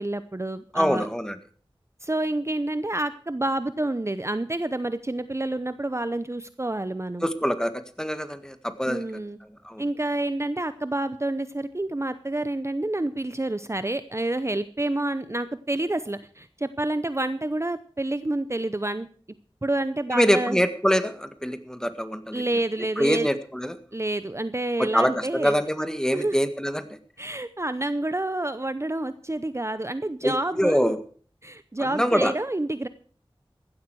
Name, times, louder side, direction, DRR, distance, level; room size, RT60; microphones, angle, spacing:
voice 1, 0.0-1.1 2.0-7.3 8.9-9.4 9.8-19.1 19.6-20.6 22.3-23.3 23.9-25.5 26.1-26.4 27.2-30.9 31.4-32.9, right 1 dB, 30° right, 12 dB, 0.7 m, -28 dB
voice 2, 0.7-1.4 7.2-9.0 9.6-9.8 20.1-22.4 23.0-23.7 24.8-26.9 30.2-31.0 31.8-32.3, equal, 5° left, 10 dB, 1.7 m, -24 dB
16.0 x 12.0 x 4.7 m, 0.44 s
wide cardioid pair, 50°, 10 cm